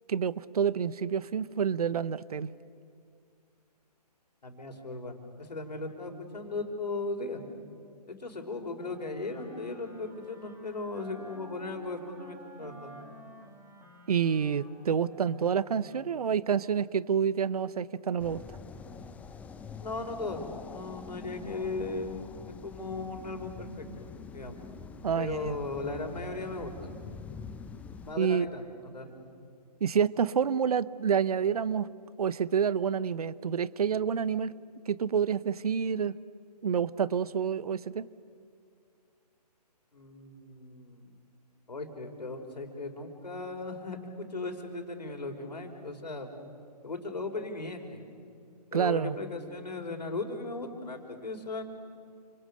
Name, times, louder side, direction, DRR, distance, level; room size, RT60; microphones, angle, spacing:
voice 1, 0.1-2.5 14.1-18.6 25.0-25.5 28.2-28.5 29.8-31.9 32.2-34.5 34.9-36.2 36.6-38.0 48.7-49.2, right 7 dB, 60° right, 19 dB, 0.9 m, -28 dB
voice 2, 4.4-7.4 8.1-12.9 19.8-22.2 22.6-23.7 24.0-24.6 25.1-26.9 28.0-28.6 28.9-29.2 39.9-41.1 41.7-44.0 44.3-46.3 46.8-48.0 48.7-51.6, left 3 dB, 80° left, 4 dB, 4.9 m, -37 dB
Wind instrument woodwind instrument, 8.8-16.3, right 1 dB, 10° right, 2.7 m, -52 dB
sound 1, 18.2-28.2, left 5 dB, 5° left, 0.7 m, -45 dB
29.5 x 27.5 x 6.6 m, 2.3 s
figure-of-eight pair, 140°, 21 cm